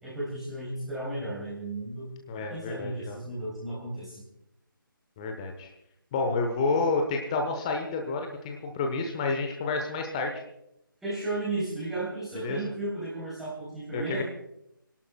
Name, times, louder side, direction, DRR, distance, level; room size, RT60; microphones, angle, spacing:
voice 1, 0.0-2.1 2.5-4.2 11.0-14.2, right 2 dB, ahead, -9 dB, 3.0 m, -34 dB
voice 2, 2.3-3.2 5.2-5.7 6.1-10.4 12.4-12.6 13.9-14.2, left 3 dB, 15° left, 3 dB, 0.9 m, -29 dB
29.0 x 11.5 x 2.3 m, 0.80 s
figure-of-eight pair, 150°, 12 cm